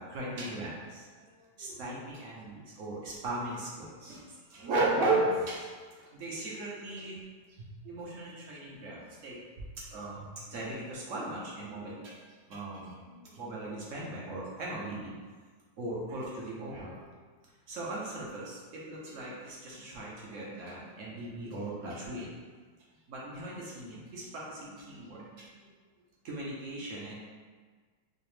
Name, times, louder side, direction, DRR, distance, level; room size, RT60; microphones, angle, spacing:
voice 1, 0.0-4.2 4.5-7.2 7.5-12.2 12.5-15.1 15.8-17.1 17.7-22.4 23.1-25.5 26.2-27.1, right 2 dB, 60° right, -5 dB, 0.8 m, -37 dB
4.9 x 2.0 x 3.1 m, 1.5 s
omnidirectional pair, 2.0 m